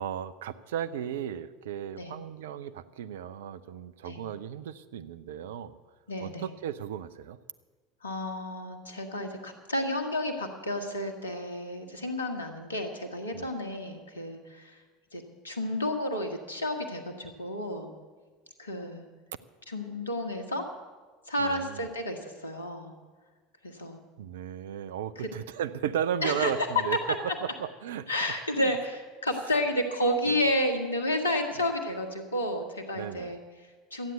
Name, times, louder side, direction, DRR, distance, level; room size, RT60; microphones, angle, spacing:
voice 1, 0.0-5.8 6.2-7.4 13.3-13.5 21.4-21.9 24.2-27.0 27.2-27.3 27.6-28.1 28.6-28.7 30.3-30.5 33.0-33.3, right 9 dB, 65° right, 12 dB, 0.5 m, -35 dB
voice 2, 6.1-6.5 8.0-14.8 15.1-17.9 18.6-19.1 19.7-20.7 21.3-22.9 23.6-24.0 25.2-25.3 26.2-26.8 28.1-34.1, left 1 dB, 80° left, 5 dB, 1.5 m, -31 dB
13.0 x 9.2 x 8.0 m, 1.4 s
figure-of-eight pair, 70°, 0 cm